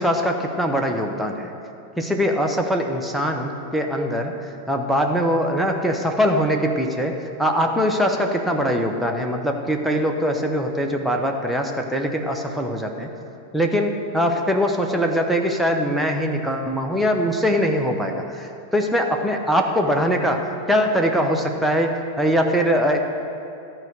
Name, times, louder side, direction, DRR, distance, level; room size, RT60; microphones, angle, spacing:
voice 1, 0.0-1.5 2.0-13.1 13.5-23.0, equal, ahead, 1 dB, 0.9 m, -22 dB
13.5 x 4.6 x 6.6 m, 2.8 s
figure-of-eight pair, 90°, 0 cm